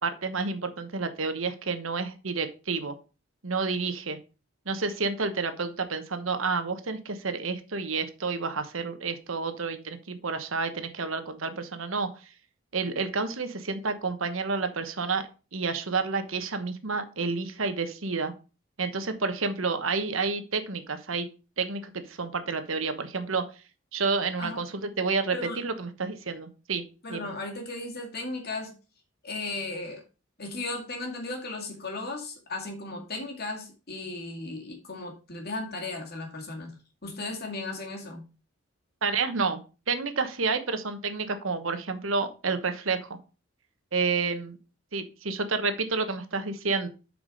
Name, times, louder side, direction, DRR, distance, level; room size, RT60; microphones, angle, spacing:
voice 1, 0.0-2.9 3.4-4.2 4.7-12.1 12.7-15.2 15.5-18.3 18.8-21.3 21.6-23.4 23.9-26.8 27.1-27.3 39.0-39.6 39.9-43.2 43.9-44.6 44.9-46.9, right 4 dB, 75° right, 9 dB, 1.1 m, -30 dB
voice 2, 27.0-28.7 29.2-30.0 30.4-38.3, left 2 dB, 50° left, 2 dB, 2.3 m, -36 dB
8.0 x 4.9 x 4.9 m, 0.32 s
head